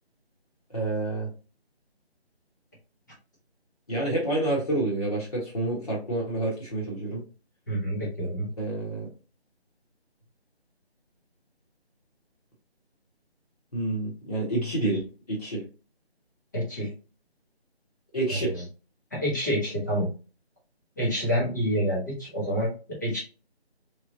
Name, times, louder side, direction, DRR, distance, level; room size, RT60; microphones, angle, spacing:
voice 1, 0.7-1.3 3.9-7.2 8.6-9.1 13.7-15.0 15.3-15.6 18.1-18.5, right 2 dB, 35° left, -5 dB, 1.4 m, -28 dB
voice 2, 7.7-8.5 16.5-16.9 18.3-18.6 19.1-20.1 21.0-23.2, equal, 15° left, -6 dB, 1.0 m, -28 dB
3.5 x 3.2 x 2.7 m, 0.33 s
figure-of-eight pair, 160°, 32 cm